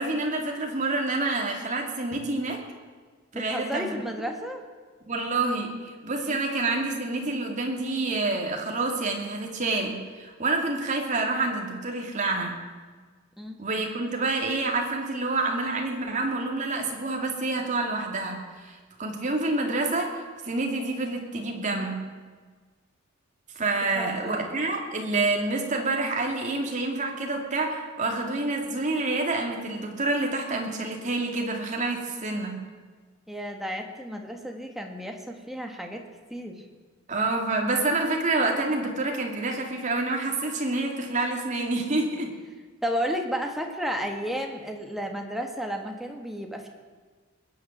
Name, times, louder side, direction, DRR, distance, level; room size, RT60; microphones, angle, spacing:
voice 1, 0.0-2.6 3.3-4.0 5.1-12.6 13.6-22.0 23.5-32.6 37.1-42.3, right 2 dB, 40° right, 1 dB, 2.5 m, -28 dB
voice 2, 3.3-4.6 6.3-6.5 13.4-13.6 23.9-24.5 33.3-36.0 36.3-36.6 42.8-46.7, equal, ahead, 3 dB, 1.7 m, -32 dB
21.0 x 8.7 x 7.4 m, 1.5 s
head